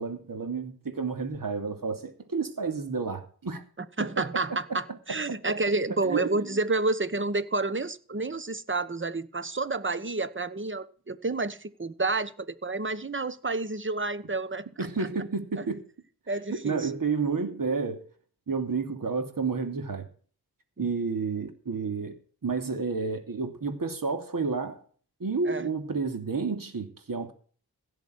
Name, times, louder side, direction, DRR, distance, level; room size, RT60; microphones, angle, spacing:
voice 1, 0.0-3.6 4.0-5.6 6.0-6.6 14.8-15.8 16.5-18.0 18.5-20.1 20.8-22.2 22.4-24.8 25.2-27.3, right 4 dB, 60° right, 2.8 m, -31 dB
voice 2, 4.0-15.1 15.6-15.7 16.3-16.9 20.8-20.9 25.5-25.7, right 3 dB, 30° right, 1.1 m, -30 dB
16.5 x 7.1 x 6.4 m
wide cardioid pair, 85°, 37 cm